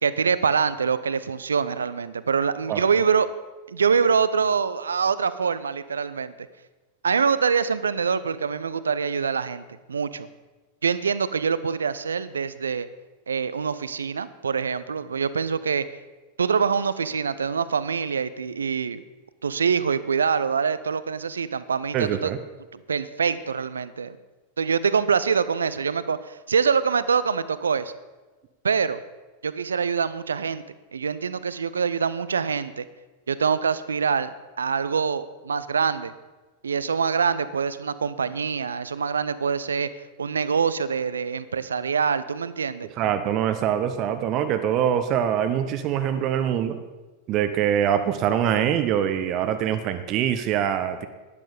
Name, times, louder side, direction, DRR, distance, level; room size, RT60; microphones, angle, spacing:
voice 1, 0.0-3.3 3.7-6.3 7.0-10.3 10.8-12.9 13.3-15.8 16.4-19.0 19.4-22.3 22.7-24.2 24.6-27.9 28.6-29.0 29.4-30.6 30.9-32.9 33.3-34.3 34.6-36.1 36.6-39.9 40.2-42.9, right 6 dB, 70° right, 15 dB, 0.5 m, -25 dB
voice 2, 21.9-22.4 43.0-46.8 47.3-51.1, right 9 dB, 40° right, 10 dB, 0.8 m, -24 dB
12.0 x 10.5 x 5.1 m, 1.2 s
figure-of-eight pair, 90°, 0 cm